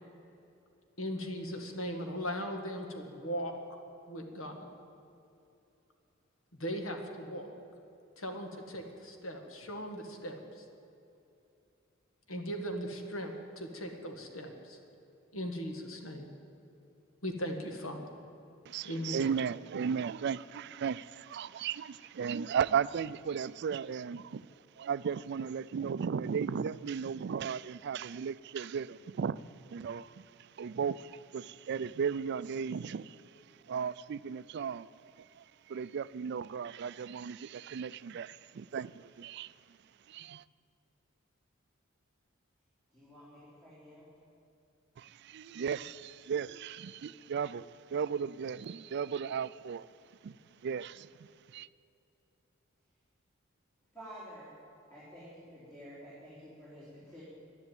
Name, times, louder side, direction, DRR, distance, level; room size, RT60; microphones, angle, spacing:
voice 1, 1.0-3.5 4.1-4.6 6.5-7.5 8.2-10.6 12.3-14.8 15.3-16.3 17.2-18.0 18.8-19.3, equal, 85° left, 4 dB, 1.9 m, -38 dB
voice 2, 18.7-24.4 24.8-29.4 29.7-33.2 33.7-39.5 40.1-40.4 45.0-49.9 50.2-50.4 50.6-51.7, right 7 dB, 55° right, 17 dB, 0.4 m, -36 dB
voice 3, 42.9-44.1 53.9-54.5 54.9-57.2, equal, 10° left, -10 dB, 3.9 m, -50 dB
11.5 x 11.0 x 9.1 m, 2.7 s
head